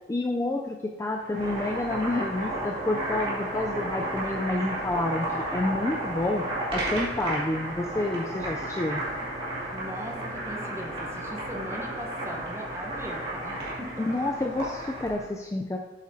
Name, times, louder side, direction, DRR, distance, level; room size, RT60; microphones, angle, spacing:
voice 1, 0.1-5.3 5.5-6.4 6.7-9.0 14.0-15.8, left 2 dB, 15° left, 2 dB, 0.3 m, -29 dB
Boiling, 1.1-15.2, right 1 dB, 30° right, 2.3 m, -33 dB
voice 2, 9.7-14.2, right 1 dB, 15° right, 1 dB, 0.8 m, -39 dB
8.1 x 8.0 x 2.7 m, 1.1 s
head